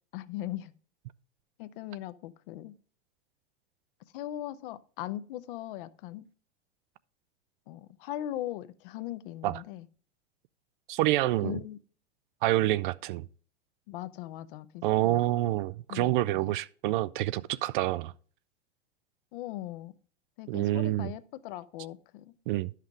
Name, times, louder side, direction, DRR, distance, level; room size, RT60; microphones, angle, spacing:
voice 1, 0.1-0.7 1.6-2.7 4.1-6.3 7.7-9.9 11.4-11.8 13.9-15.2 15.9-16.6 19.3-19.9 20.4-22.3, left 13 dB, 55° left, 0.8 m, -39 dB
voice 2, 10.9-11.5 12.4-13.3 14.8-18.1 20.5-21.1 22.5-22.7, right 15 dB, 50° right, 0.4 m, -27 dB
11.5 x 5.8 x 3.5 m
figure-of-eight pair, 90°, 33 cm